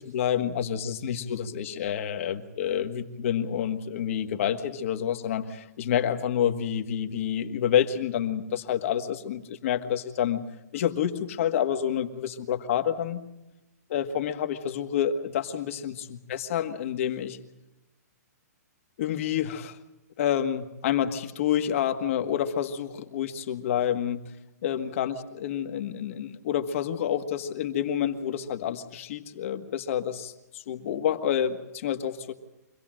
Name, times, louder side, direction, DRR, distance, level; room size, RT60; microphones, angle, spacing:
voice 1, 0.0-10.4 10.7-13.2 13.9-17.4 19.0-19.8 20.2-24.2 24.6-32.3, left 9 dB, 50° left, 6 dB, 1.8 m, -28 dB
25.0 x 17.0 x 7.7 m, 0.98 s
hypercardioid pair, 150°, 9 cm